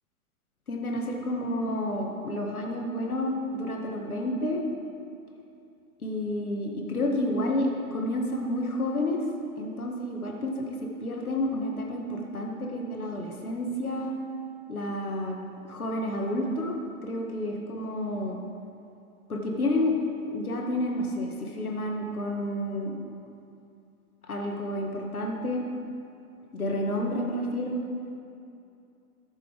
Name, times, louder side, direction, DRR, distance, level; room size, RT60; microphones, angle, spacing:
voice 1, 0.7-4.6 6.0-9.2 9.6-14.1 14.7-15.4 15.6-16.7 17.0-18.4 19.3-19.9 20.3-23.0 24.3-25.7 26.5-27.8, left 1 dB, 90° left, 0 dB, 1.8 m, -30 dB
14.0 x 6.8 x 4.9 m, 2.6 s
hypercardioid pair, 110°, 42 cm